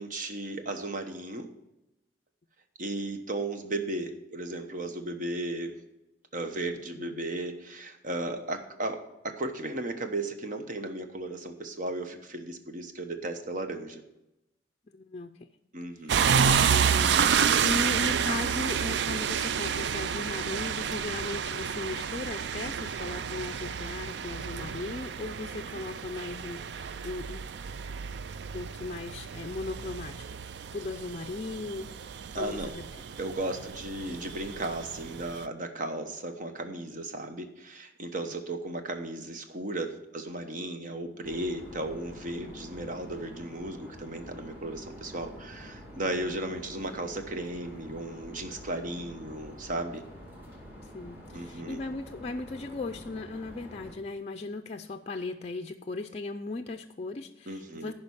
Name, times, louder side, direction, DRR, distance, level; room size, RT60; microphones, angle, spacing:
voice 1, 0.0-1.5 2.8-5.8 6.3-14.0 15.7-16.3 32.3-32.7 33.2-50.0 51.3-51.8 57.5-57.9, right 2 dB, 50° right, 6 dB, 1.0 m, -35 dB
voice 2, 14.9-15.5 16.7-27.5 28.5-30.2 30.7-31.9 32.4-33.0 38.3-38.4 46.2-46.4 50.9-57.9, left 3 dB, 35° left, 6 dB, 0.4 m, -37 dB
sound 1, 16.1-35.5, right 7 dB, 70° right, 0.4 m, -30 dB
sound 2, 41.2-54.0, equal, 10° right, 2.1 m, -47 dB
10.5 x 5.1 x 7.0 m, 0.93 s
head